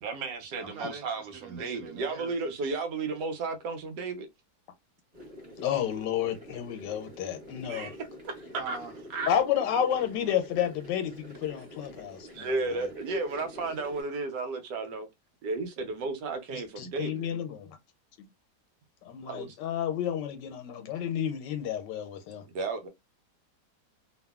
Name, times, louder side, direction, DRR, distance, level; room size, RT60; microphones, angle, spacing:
voice 1, 0.0-4.3 7.7-8.8 9.1-9.3 12.3-15.1 15.4-17.2 19.2-19.6 22.5-22.9, right 3 dB, 75° right, 1.3 m, -33 dB
voice 2, 0.5-1.1 1.4-2.3 2.6-2.7 8.5-8.9, right 4 dB, 60° right, 1.3 m, -42 dB
sound 1, 5.1-14.0, equal, 25° right, 1.1 m, -47 dB
voice 3, 5.6-7.9 9.3-12.6 16.5-17.8 19.0-22.4, left 9 dB, 90° left, 1.3 m, -31 dB
2.9 x 2.5 x 2.3 m
omnidirectional pair, 1.9 m